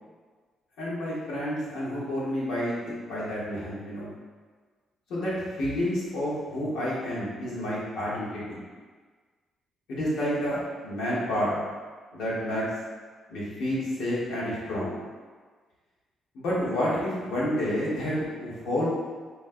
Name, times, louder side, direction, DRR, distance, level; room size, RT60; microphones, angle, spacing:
voice 1, 0.8-4.1 5.1-8.6 9.9-11.5 12.1-12.7 13.3-14.9 16.3-18.9, equal, 80° left, -8 dB, 1.5 m, -29 dB
5.6 x 3.1 x 2.2 m, 1.5 s
cardioid pair, 90°, 0 cm